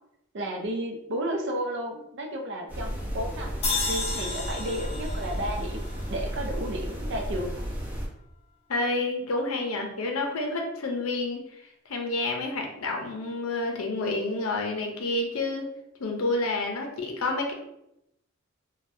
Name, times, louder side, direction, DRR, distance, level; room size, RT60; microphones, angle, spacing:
voice 1, 0.3-7.6, right 1 dB, 60° right, 3 dB, 0.5 m, -33 dB
sound 1, 2.7-8.1, equal, 10° right, 0.8 m, -33 dB
sound 2, 3.6-6.9, left 3 dB, 30° left, 0.5 m, -33 dB
voice 2, 8.7-11.4 11.9-15.7 16.0-17.5, left 2 dB, 90° left, 2 dB, 0.6 m, -29 dB
3.2 x 2.2 x 2.6 m, 0.82 s
head